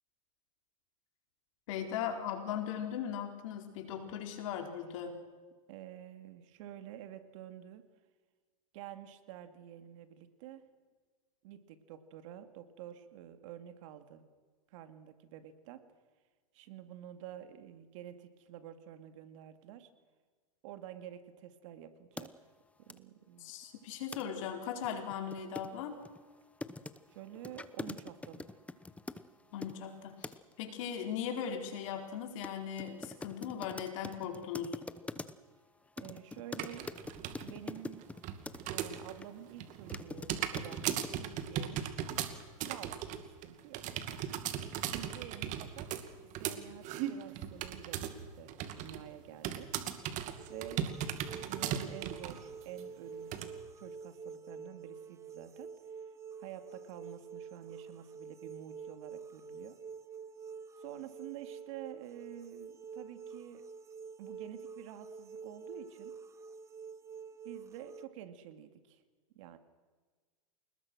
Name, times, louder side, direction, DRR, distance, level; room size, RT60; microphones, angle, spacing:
voice 1, 1.7-5.1 23.4-26.0 29.5-34.8, left 8 dB, 65° left, 4 dB, 4.5 m, -38 dB
voice 2, 5.7-7.8 8.7-10.6 11.4-14.2 14.7-15.8 16.5-19.9 20.6-22.3 22.9-23.5 27.1-28.5 36.0-36.9 37.4-38.1 38.7-41.8 42.7-43.9 44.7-45.9 46.1-49.7 50.5-55.7 56.4-59.8 60.8-63.6 64.2-66.2 67.4-69.0 69.3-69.6, right 11 dB, 65° right, 9 dB, 2.5 m, -49 dB
sound 1, 22.2-22.3 22.9-23.0 24.1-24.2 24.5-24.6 24.8-29.8 30.2-30.5 32.4-32.5 32.8-35.5 36.0-38.6 39.2-39.3 39.7-41.2, left 3 dB, 5° left, 1.0 m, -44 dB
sound 2, 36.6-37.5 37.8-39.2 39.5-48.2 48.5-49.0 49.4-52.4 52.8-52.9 53.3-53.5, right 10 dB, 45° right, 2.4 m, -37 dB
sound 3, 50.4-68.0, right 5 dB, 15° right, 1.1 m, -48 dB
28.5 x 19.5 x 6.3 m, 1.4 s
hypercardioid pair, 120°, 18 cm